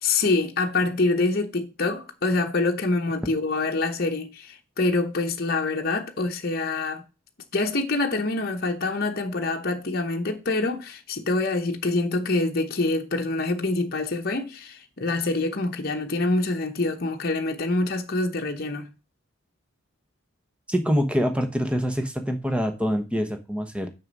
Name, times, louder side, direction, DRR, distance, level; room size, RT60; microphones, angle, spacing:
voice 1, 0.0-7.0 7.5-18.9, left 2 dB, 45° left, 0.9 m, -25 dB
voice 2, 20.7-23.9, equal, 5° right, 0.9 m, -25 dB
6.4 x 6.1 x 5.3 m
head